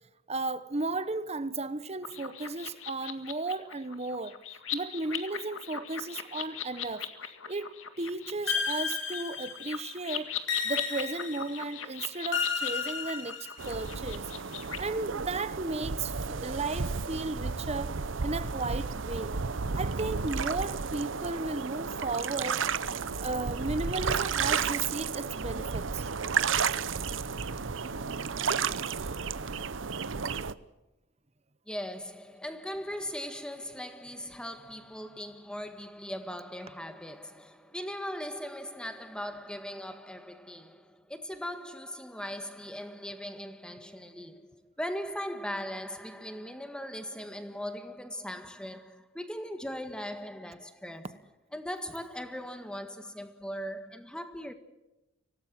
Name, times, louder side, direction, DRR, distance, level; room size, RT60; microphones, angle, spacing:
voice 1, 0.3-4.3 4.7-7.0 7.5-10.3 10.6-13.4 13.7-14.3 14.8-17.9 18.2-19.4 19.8-22.6 22.9-26.1 28.8-28.9, right 3 dB, 30° right, 1.1 m, -34 dB
sound 1, 2.0-14.8, left 9 dB, 85° left, 2.0 m, -40 dB
sound 2, 8.5-9.8 10.5-11.6 12.3-13.8, left 6 dB, 65° left, 3.4 m, -32 dB
sound 3, 13.6-30.5, right 5 dB, 70° right, 0.8 m, -32 dB
voice 2, 31.7-51.2 51.5-54.5, equal, 5° left, 1.7 m, -39 dB
25.0 x 17.5 x 7.6 m
head